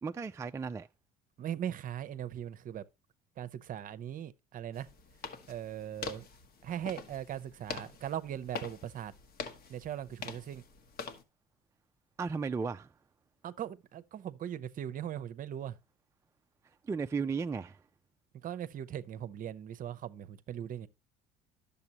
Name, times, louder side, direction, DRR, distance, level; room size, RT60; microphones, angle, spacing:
voice 1, 0.0-0.9 12.2-12.9 16.8-17.8, right 5 dB, 15° right, 0.4 m, -35 dB
voice 2, 1.4-2.9 3.4-4.9 5.5-6.3 6.6-9.1 9.7-10.6 13.4-15.8 18.4-20.9, right 10 dB, 45° right, 0.7 m, -39 dB
sound 1, 4.7-11.2, left 5 dB, 55° left, 1.4 m, -45 dB
10.5 x 6.9 x 2.9 m
hypercardioid pair, 75°, 19 cm